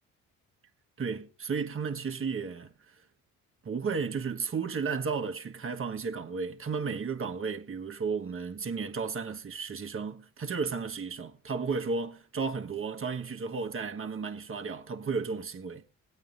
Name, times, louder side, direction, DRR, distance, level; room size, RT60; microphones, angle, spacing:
voice 1, 1.0-2.7 3.6-15.8, right 5 dB, 35° right, 1.4 m, -33 dB
21.0 x 8.7 x 2.6 m
supercardioid pair, 65°, 36 cm